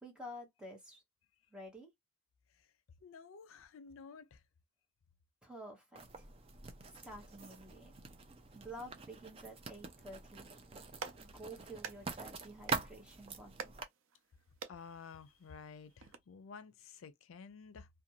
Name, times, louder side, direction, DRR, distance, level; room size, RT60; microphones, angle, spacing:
voice 1, 0.0-1.0 1.5-1.9 5.4-6.3 6.9-8.0 8.5-10.5 11.2-13.7, equal, 5° right, 0.9 m, -50 dB
voice 2, 3.0-4.4 14.7-17.9, left 5 dB, 85° left, 0.4 m, -52 dB
Writing, 6.0-13.8, right 4 dB, 30° right, 0.4 m, -45 dB
Clapping, 10.8-16.2, right 6 dB, 80° right, 0.5 m, -50 dB
2.5 x 2.2 x 2.8 m
head